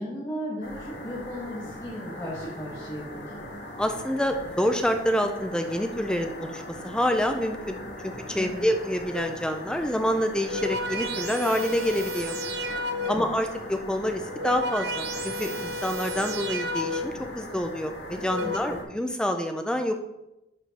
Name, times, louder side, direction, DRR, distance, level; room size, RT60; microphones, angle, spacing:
voice 1, 0.0-3.5 8.3-8.7 13.0-13.2 18.4-18.8, equal, 20° left, -8 dB, 1.3 m, -36 dB
sound 1, 0.6-18.8, left 1 dB, 80° left, 1.5 m, -40 dB
voice 2, 3.8-7.8 8.0-12.4 13.1-19.9, equal, 5° left, 5 dB, 0.4 m, -27 dB
sound 2, 9.1-9.5 10.2-13.4 14.1-17.3 18.0-18.6, left 1 dB, 70° right, 0.6 m, -32 dB
11.0 x 5.0 x 2.9 m, 0.94 s
head